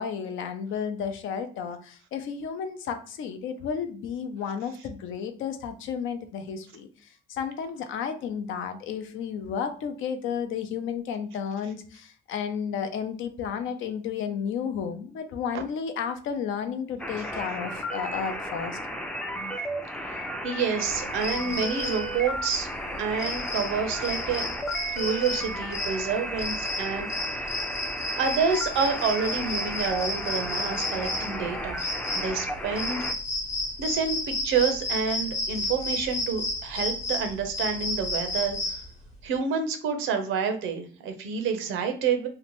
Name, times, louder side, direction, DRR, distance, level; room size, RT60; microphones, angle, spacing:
voice 1, 0.0-18.8, left 7 dB, 80° left, 8 dB, 0.5 m, -32 dB
sound 1, 17.0-33.1, equal, 5° left, 0.3 m, -34 dB
voice 2, 20.4-22.7 23.0-24.5 24.9-27.1 28.2-31.9 32.1-33.0 33.8-38.6 39.2-42.3, right 6 dB, 90° right, 7 dB, 0.6 m, -28 dB
sound 2, 20.8-39.0, left 2 dB, 35° left, 0.9 m, -32 dB
2.8 x 2.1 x 2.9 m, 0.42 s
cardioid pair, 90°, 20 cm